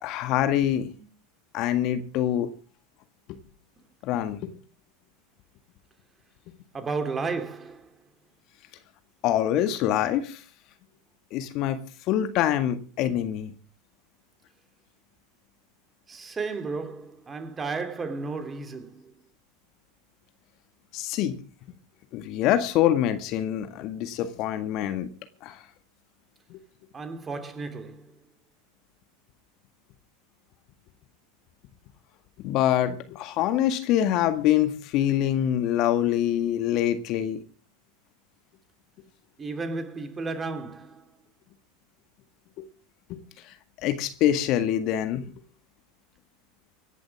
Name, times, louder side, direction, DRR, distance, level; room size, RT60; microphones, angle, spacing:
voice 1, 0.0-0.9 1.5-2.5 4.0-4.5 9.2-10.4 11.3-13.5 20.9-21.4 22.1-25.1 25.4-25.6 26.5-26.6 32.4-37.4 42.6-42.7 43.1-43.2 43.8-45.3, left 11 dB, 50° left, 1.8 m, -25 dB
voice 2, 6.7-8.0 16.1-19.1 26.9-28.2 39.4-41.2, right 4 dB, 20° right, 3.1 m, -33 dB
25.5 x 11.0 x 3.6 m
figure-of-eight pair, 85°, 0 cm